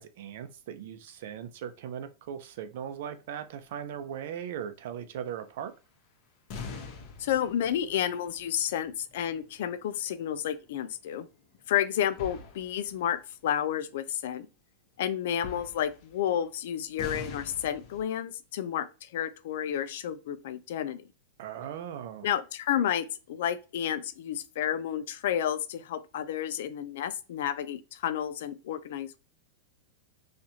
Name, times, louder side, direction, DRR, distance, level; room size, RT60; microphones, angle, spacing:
voice 1, 0.0-5.7 21.4-22.3, right 9 dB, 65° right, 0.6 m, -39 dB
sound 1, 6.5-10.3 10.6-10.9 12.1-13.1 13.6-13.7 15.3-16.4 17.0-18.0, left 4 dB, 45° left, 0.9 m, -43 dB
voice 2, 7.2-11.3 11.7-14.5 15.0-21.0 22.2-29.3, left 10 dB, 70° left, 0.4 m, -31 dB
4.3 x 2.5 x 2.8 m
supercardioid pair, 160°, 0 cm